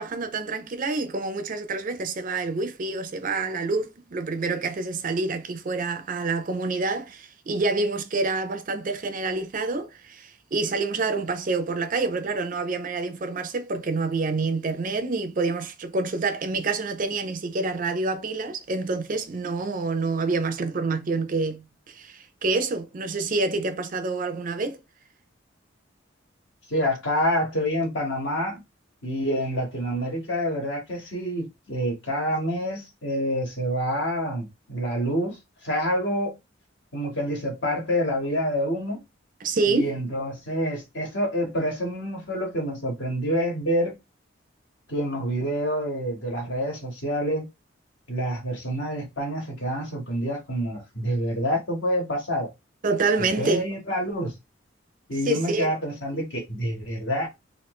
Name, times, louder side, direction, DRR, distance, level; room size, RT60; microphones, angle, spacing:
voice 1, 0.0-24.8 39.4-39.9 52.8-53.7 55.3-55.7 56.1-56.2, right 3 dB, 45° right, 0.5 m, -27 dB
voice 2, 26.7-28.6 29.0-35.4 35.6-36.3 36.9-39.0 39.7-44.0 44.9-47.5 48.1-52.5 53.4-54.3 55.1-57.3, equal, 65° left, 1.5 m, -27 dB
3.0 x 2.7 x 3.1 m
head